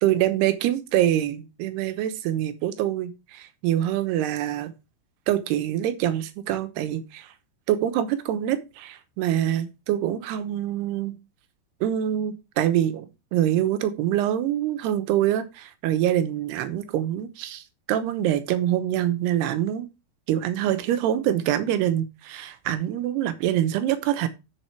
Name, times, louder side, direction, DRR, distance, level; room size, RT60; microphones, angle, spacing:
voice 1, 0.0-4.7 5.3-7.3 7.7-11.2 11.8-17.6 17.9-19.9 20.3-24.3, right 11 dB, 75° right, 2.7 m, -25 dB
8.8 x 6.6 x 4.5 m
omnidirectional pair, 5.4 m